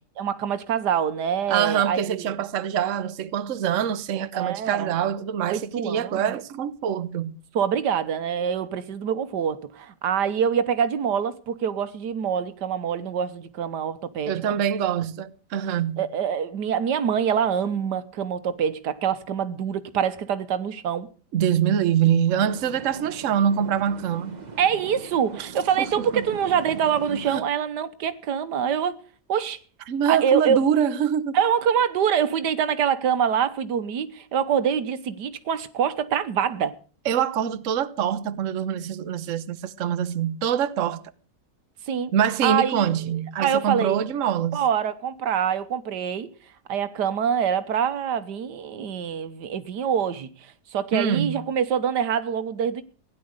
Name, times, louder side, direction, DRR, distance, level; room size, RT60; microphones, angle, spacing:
voice 1, 0.2-2.3 4.3-5.0 5.4-6.3 7.5-14.6 16.0-21.1 24.6-28.9 29.3-29.6 30.1-30.6 31.3-36.7 41.9-42.1 42.4-43.0 43.4-44.0 44.5-46.3 46.7-52.8, right 8 dB, 85° right, 1.6 m, -25 dB
voice 2, 1.5-7.3 14.2-16.0 21.3-24.4 25.4-25.5 25.8-25.9 26.1-26.2 27.1-27.4 29.9-31.4 37.0-41.0 42.1-44.6 50.9-51.4, right 9 dB, 55° right, 1.2 m, -24 dB
sound 1, 22.4-27.4, right 4 dB, 30° right, 1.3 m, -40 dB
16.5 x 11.0 x 6.5 m
omnidirectional pair, 1.7 m